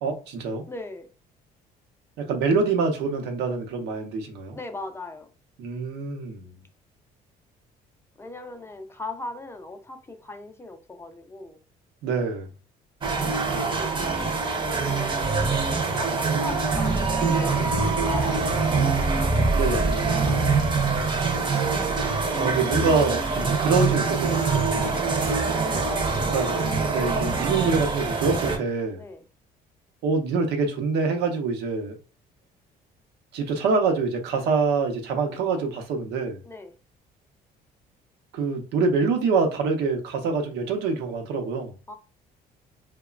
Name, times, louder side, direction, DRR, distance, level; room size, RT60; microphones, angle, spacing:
voice 1, 0.0-0.6 2.2-4.6 5.6-6.6 12.0-12.5 19.5-20.0 22.4-24.7 26.3-26.5 26.9-29.0 30.0-32.0 33.3-36.4 38.3-41.7, right 4 dB, 80° right, 0.7 m, -25 dB
voice 2, 0.7-1.1 4.5-5.3 8.2-11.6 13.1-14.1 14.7-19.5 20.1-20.4 25.5-26.3 29.0-29.2 36.4-36.7 41.9-42.0, left 2 dB, 15° left, 0.4 m, -39 dB
sound 1, 13.0-28.6, right 4 dB, 30° right, 0.6 m, -24 dB
2.9 x 2.1 x 2.4 m
cardioid pair, 110°, 17 cm